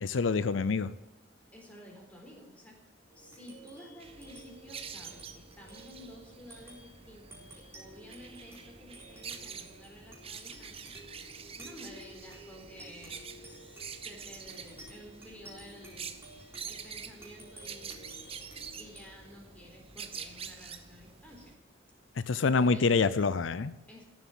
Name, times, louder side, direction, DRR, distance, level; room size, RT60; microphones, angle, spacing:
voice 1, 0.0-0.9 22.3-23.7, left 4 dB, 85° left, 15 dB, 0.6 m, -26 dB
voice 2, 1.5-2.8 3.2-10.9 11.6-16.1 16.7-18.2 18.8-21.6 22.5-23.1 23.9-24.0, left 1 dB, 5° left, -1 dB, 4.0 m, -52 dB
sound 1, 3.1-22.0, right 1 dB, 15° right, 4.0 m, -54 dB
sound 2, 4.0-21.5, right 6 dB, 30° right, 1.0 m, -47 dB
15.0 x 7.5 x 9.2 m, 0.99 s
head